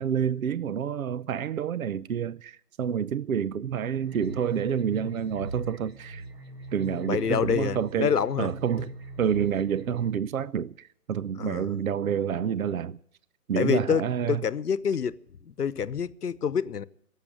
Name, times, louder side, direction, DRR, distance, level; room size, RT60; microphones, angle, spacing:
voice 1, 0.0-6.3 6.7-8.9 9.2-13.0 13.5-14.4, right 8 dB, 60° right, 0.7 m, -28 dB
sound 1, 4.0-10.1, right 2 dB, 40° right, 1.7 m, -40 dB
voice 2, 7.0-8.5 11.4-11.7 13.6-14.0 14.3-15.1 15.5-16.8, left 7 dB, 75° left, 1.0 m, -27 dB
17.0 x 7.5 x 10.0 m
figure-of-eight pair, 155°, 46 cm